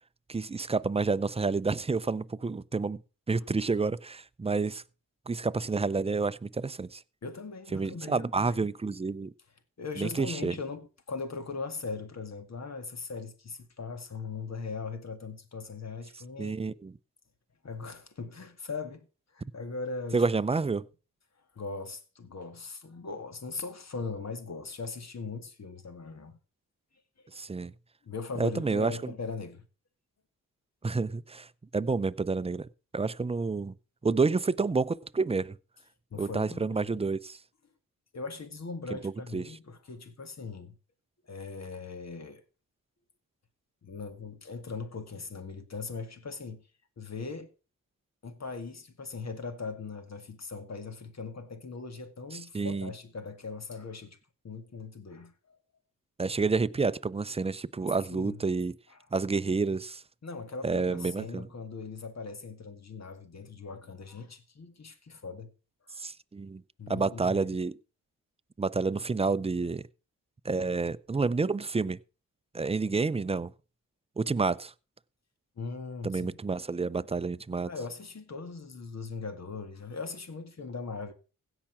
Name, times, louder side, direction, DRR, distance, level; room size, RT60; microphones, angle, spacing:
voice 1, 0.3-3.0 3.3-4.8 5.3-7.0 7.7-9.3 10.0-10.5 16.4-16.9 20.1-20.9 27.3-27.7 28.4-29.1 30.8-32.7 32.9-33.7 34.0-35.6 36.2-37.4 39.0-39.6 52.3-52.9 56.2-58.8 59.1-60.0 60.6-61.5 66.0-66.6 66.9-67.8 68.6-69.9 70.4-72.0 72.5-73.5 74.2-74.7 76.0-77.7, right 4 dB, 20° right, 0.5 m, -29 dB
voice 2, 7.2-8.7 9.8-16.6 17.6-19.1 19.3-20.2 21.6-26.4 27.3-27.5 28.0-29.6 36.1-37.0 38.1-40.8 41.2-42.4 43.8-46.6 47.0-47.5 48.2-54.2 54.4-55.6 58.1-58.4 58.9-59.0 60.2-65.5 66.8-67.5 75.6-76.3 77.7-81.1, left 4 dB, 50° left, 2.1 m, -40 dB
16.0 x 5.9 x 5.9 m
cardioid pair, 70°, 34 cm